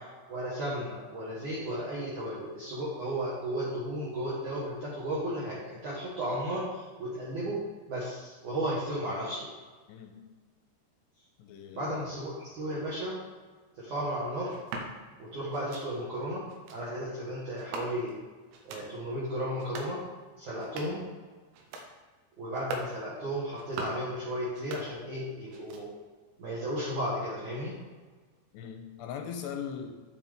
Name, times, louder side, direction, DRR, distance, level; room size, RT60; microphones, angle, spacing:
voice 1, 0.3-7.6 7.9-9.5 11.8-13.1 13.8-14.5 15.2-16.4 16.7-18.1 18.7-20.0 20.4-21.0 22.4-25.9 26.4-27.7, right 1 dB, 55° right, -8 dB, 2.6 m, -34 dB
voice 2, 9.9-10.2 11.4-12.1 28.5-30.0, left 7 dB, 85° left, 4 dB, 2.7 m, -40 dB
sound 1, 14.5-14.9 15.5-15.9 16.5-16.8 17.6-18.2 18.5-18.9 19.5-20.0 20.5-21.1 21.5-21.9 22.5-22.9 23.5-24.1 24.5-25.2 25.5-26.1, right 2 dB, 90° right, 3.4 m, -42 dB
9.5 x 7.2 x 3.6 m, 1.4 s
omnidirectional pair, 5.1 m